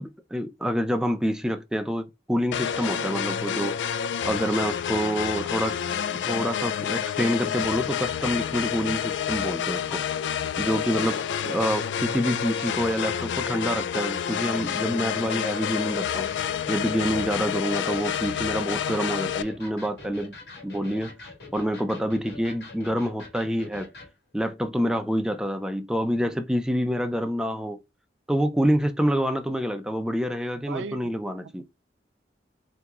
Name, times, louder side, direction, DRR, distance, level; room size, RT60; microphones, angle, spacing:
voice 1, 0.0-3.8 4.2-5.8 6.2-10.0 10.6-16.3 16.7-20.4 20.6-21.1 21.5-23.9 24.3-27.8 28.3-31.6, equal, 5° right, 0.4 m, -27 dB
sound 1, 2.5-19.4, left 8 dB, 85° left, 0.3 m, -29 dB
Electric guitar, 15.4-24.1, left 3 dB, 65° left, 1.5 m, -45 dB
voice 2, 30.6-31.1 31.5-31.6, right 6 dB, 80° right, 0.3 m, -38 dB
3.5 x 2.9 x 3.5 m
head